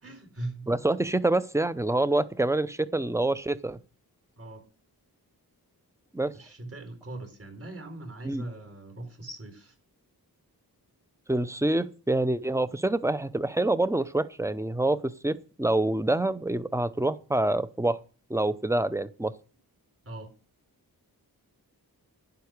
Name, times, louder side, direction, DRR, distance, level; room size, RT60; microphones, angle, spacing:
voice 1, 0.0-0.7 4.4-4.7 6.3-9.7 20.0-20.3, right 2 dB, 35° right, 4.2 m, -40 dB
voice 2, 0.7-3.8 6.1-6.3 8.2-8.4 11.3-18.0 18.3-19.3, right 2 dB, 10° right, 0.7 m, -26 dB
12.0 x 10.5 x 6.6 m
wide cardioid pair, 140°, 38 cm